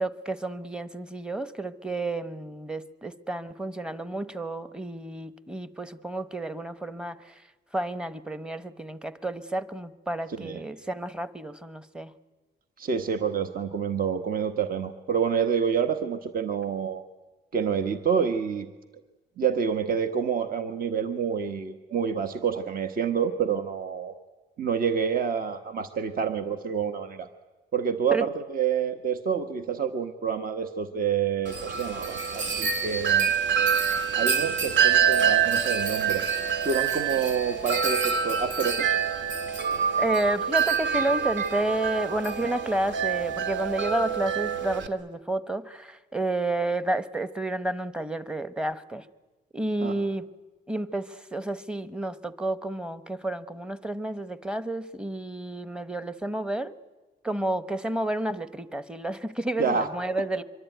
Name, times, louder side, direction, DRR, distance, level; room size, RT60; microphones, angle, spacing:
voice 1, 0.0-7.4 7.7-12.1 28.1-28.2 40.0-49.1 49.5-50.3 50.7-56.7 57.2-60.4, right 1 dB, 5° right, 12 dB, 1.0 m, -31 dB
voice 2, 10.3-10.7 12.8-17.0 17.5-18.7 19.4-24.1 24.6-27.3 27.7-33.3 34.1-36.3 36.6-39.1 49.8-49.9 59.6-59.9, right 7 dB, 50° right, 8 dB, 1.3 m, -28 dB
Wind chime, 31.5-44.9, right 7 dB, 75° right, 1.9 m, -26 dB
24.0 x 24.0 x 9.3 m, 1.2 s
cardioid pair, 130°, 19 cm